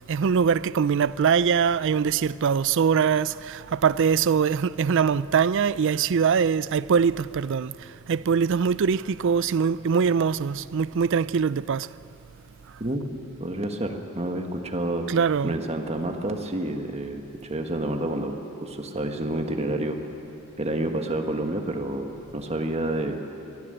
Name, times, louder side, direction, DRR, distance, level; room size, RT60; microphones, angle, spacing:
voice 1, 0.1-11.9 15.1-15.5, right 6 dB, 60° right, 0.4 m, -23 dB
voice 2, 12.8-15.0 15.4-18.4 18.6-20.0 20.6-23.2, right 1 dB, 30° right, 1.5 m, -29 dB
23.5 x 15.5 x 7.9 m
head